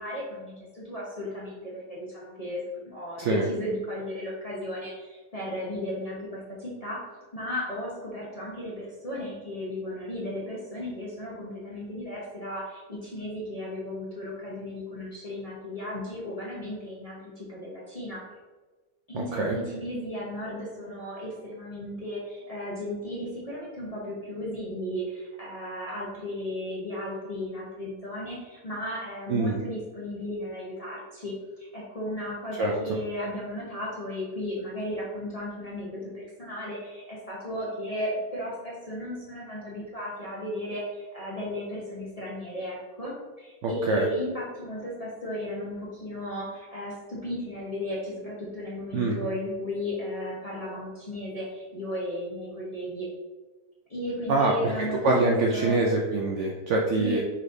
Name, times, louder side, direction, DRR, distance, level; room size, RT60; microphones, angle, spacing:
voice 1, 0.0-7.1 7.3-18.2 19.1-53.1 53.9-55.8 57.0-57.2, left 1 dB, 35° left, -6 dB, 0.7 m, -35 dB
voice 2, 43.6-44.1 48.9-49.2 54.3-57.2, right 2 dB, 70° right, -1 dB, 0.7 m, -24 dB
4.8 x 4.1 x 2.6 m, 1.3 s
omnidirectional pair, 1.7 m